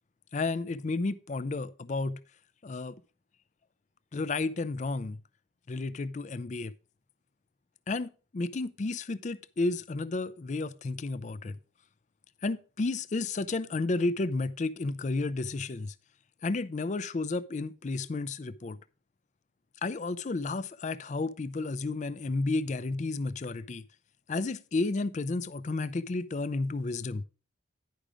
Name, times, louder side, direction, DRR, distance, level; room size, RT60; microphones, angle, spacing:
voice 1, 0.3-2.2 2.6-3.0 4.1-5.2 5.7-6.7 7.9-11.6 12.4-15.9 16.4-18.8 19.8-23.9 24.3-27.2, left 3 dB, 40° left, 0.4 m, -32 dB
10.5 x 5.0 x 4.9 m
head